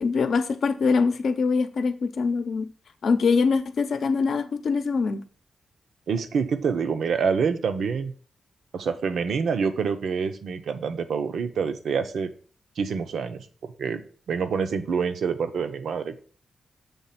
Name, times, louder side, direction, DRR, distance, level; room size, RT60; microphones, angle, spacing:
voice 1, 0.0-2.7 3.0-5.2, left 4 dB, 65° left, 0.7 m, -23 dB
voice 2, 6.1-8.1 8.7-12.3 12.8-14.0 14.3-16.2, right 6 dB, 75° right, 0.7 m, -27 dB
7.1 x 3.5 x 5.8 m
wide cardioid pair, 125°, 0 cm